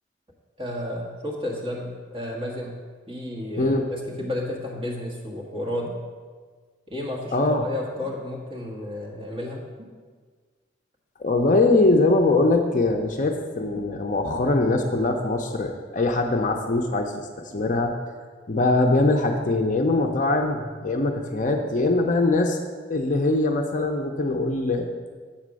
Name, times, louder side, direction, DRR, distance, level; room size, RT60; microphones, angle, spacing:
voice 1, 0.6-2.8 3.1-5.9 6.9-9.6, left 1 dB, 30° right, -3 dB, 1.3 m, -32 dB
sound 1, 4.1-4.4 5.8-6.1 7.9-8.3 9.8-10.0 11.8-12.1 13.7-14.0 15.5-15.8 17.5-17.7 19.4-20.0 21.5-21.8 22.6-22.7, equal, 80° right, 2.1 m, -46 dB
voice 2, 7.3-7.6 11.2-17.3 17.5-17.9 18.5-22.6 22.9-24.9, left 2 dB, 40° left, 4 dB, 0.5 m, -22 dB
7.5 x 4.3 x 6.2 m, 1.5 s
head